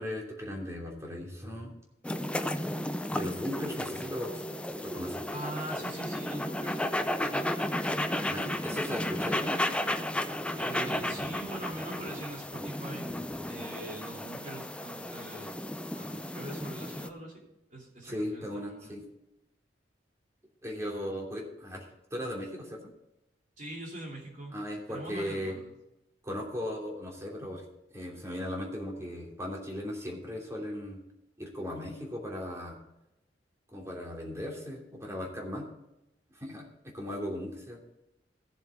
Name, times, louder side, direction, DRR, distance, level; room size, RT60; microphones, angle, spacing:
voice 1, 0.0-1.7 3.1-4.5 4.8-5.2 8.2-10.0 18.0-19.0 20.6-22.9 24.5-25.6 26.2-27.6 27.9-31.0 31.4-32.8 33.7-35.7 36.3-37.8, left 1 dB, 15° right, -1 dB, 3.0 m, -37 dB
sound 1, 2.0-17.1, left 1 dB, 5° left, 0.5 m, -33 dB
voice 2, 5.3-6.8 7.2-7.7 8.0-8.1 10.6-13.1 13.5-15.5 15.9-17.4 17.7-18.9 23.6-24.6 24.9-25.7, right 1 dB, 45° right, -2 dB, 3.1 m, -42 dB
16.0 x 7.4 x 3.6 m, 0.89 s
head